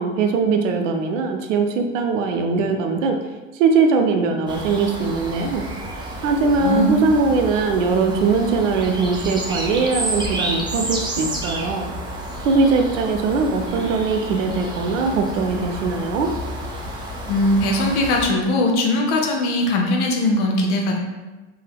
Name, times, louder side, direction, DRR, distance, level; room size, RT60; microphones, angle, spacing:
voice 1, 0.0-3.2 3.5-5.6 6.2-11.9 12.4-16.3, right 4 dB, 80° right, 5 dB, 0.5 m, -20 dB
sound 1, 4.5-18.3, right 1 dB, 15° right, 0.4 m, -30 dB
voice 2, 6.6-7.0 17.3-21.0, left 1 dB, 70° left, 1 dB, 0.7 m, -20 dB
3.2 x 2.7 x 2.2 m, 1.2 s
hypercardioid pair, 90°, 37 cm